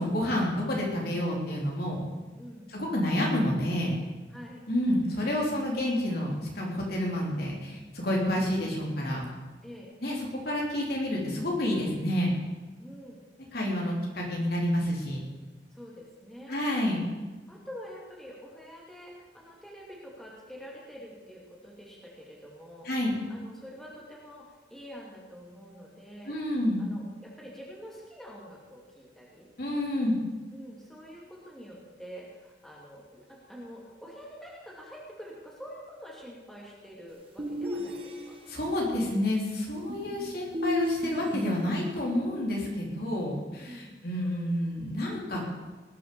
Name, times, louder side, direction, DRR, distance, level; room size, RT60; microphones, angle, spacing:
voice 1, 0.0-2.1 2.7-4.0 4.7-9.3 10.0-12.3 13.5-15.2 16.5-17.1 22.9-23.1 26.3-26.8 29.6-30.1 38.5-45.4, left 1 dB, 55° left, -2 dB, 3.6 m, -29 dB
voice 2, 2.4-2.7 4.3-4.6 9.6-9.9 12.8-13.3 13.8-14.0 15.7-16.7 17.5-29.5 30.5-38.4 43.6-44.0, equal, ahead, -4 dB, 2.7 m, -46 dB
sound 1, 37.4-38.6 39.9-42.1, left 1 dB, 30° right, 1.5 m, -33 dB
19.5 x 7.5 x 7.0 m, 1.2 s
head